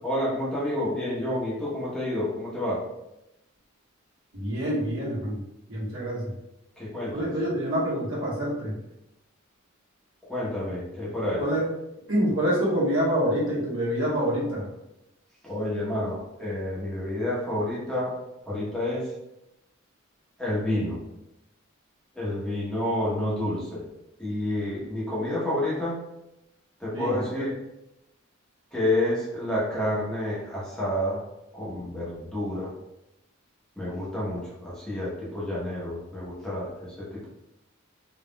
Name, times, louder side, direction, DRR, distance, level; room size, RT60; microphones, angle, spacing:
voice 1, 0.0-2.8 6.8-7.3 10.3-11.4 15.4-18.2 18.5-19.1 20.4-21.0 22.1-23.8 24.2-26.0 26.8-27.5 28.7-31.2 31.5-32.7 33.8-37.3, left 1 dB, 5° left, -8 dB, 0.9 m, -29 dB
voice 2, 4.3-5.4 5.7-6.3 7.1-8.8 11.4-11.7 12.1-14.7 26.9-27.4, equal, 70° right, -6 dB, 1.3 m, -26 dB
3.7 x 3.0 x 2.3 m, 0.89 s
head